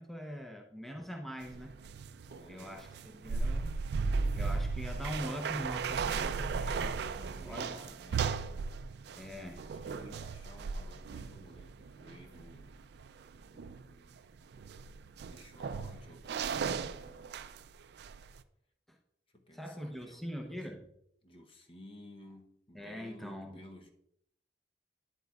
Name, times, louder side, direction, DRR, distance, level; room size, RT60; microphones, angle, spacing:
voice 1, 0.0-1.7 2.5-6.9 7.4-7.8 9.2-9.6 18.9-19.0 19.5-20.9 22.7-23.6, equal, ahead, 2 dB, 0.7 m, -43 dB
sound 1, 1.4-17.7 18.0-18.4, right 5 dB, 65° right, 0.4 m, -36 dB
voice 2, 2.1-2.8 7.1-8.3 9.1-12.8 13.5-14.2 15.3-17.6 19.3-20.8 21.2-23.9, left 1 dB, 30° left, 3 dB, 0.8 m, -55 dB
9.6 x 7.8 x 2.3 m, 0.75 s
head